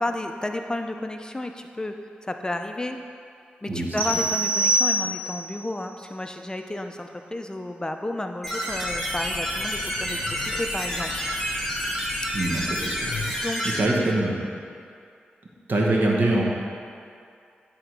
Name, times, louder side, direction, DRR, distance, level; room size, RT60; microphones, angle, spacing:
voice 1, 0.0-2.0 2.2-3.0 3.6-11.1 13.3-13.9, left 1 dB, 20° left, 5 dB, 0.5 m, -32 dB
sound 1, 4.0-5.5, right 1 dB, 80° right, 1.4 m, -24 dB
sound 2, 8.4-13.8, equal, ahead, 1.9 m, -29 dB
Train, 8.7-13.6, left 4 dB, 90° left, 0.7 m, -39 dB
voice 2, 12.3-13.1 13.8-14.5 15.7-16.4, right 2 dB, 60° right, -2 dB, 1.3 m, -23 dB
9.9 x 3.8 x 4.7 m, 2.4 s
cardioid pair, 50°, 4 cm